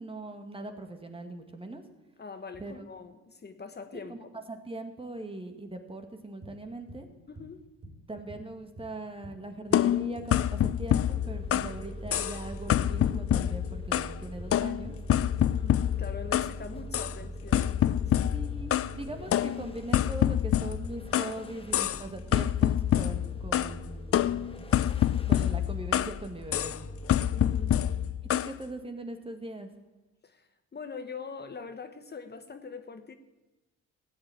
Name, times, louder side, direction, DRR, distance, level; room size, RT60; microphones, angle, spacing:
voice 1, 0.0-1.8 2.6-2.8 3.9-4.2 4.5-7.1 8.1-15.0 18.3-24.5 25.3-26.8 28.2-29.7, right 2 dB, 20° right, 6 dB, 2.2 m, -41 dB
voice 2, 2.2-4.2 7.3-7.6 15.4-18.3 27.3-27.9 30.2-33.1, left 5 dB, 35° left, 8 dB, 1.2 m, -43 dB
sound 1, 6.4-12.7 13.0-19.3, right 1 dB, 50° right, 4.3 m, -48 dB
sound 2, 9.7-11.8 12.1-12.4 12.7-14.2 14.5-16.6 16.9-17.2 17.5-18.9 19.3-21.4 21.7-22.1 22.3-23.7 24.1-26.2 26.5-26.8 27.1-28.5, left 11 dB, 50° left, 0.6 m, -26 dB
sound 3, 11.1-28.1, left 1 dB, 20° left, 1.4 m, -42 dB
15.0 x 9.4 x 8.8 m, 1.1 s
cardioid pair, 90°, 30 cm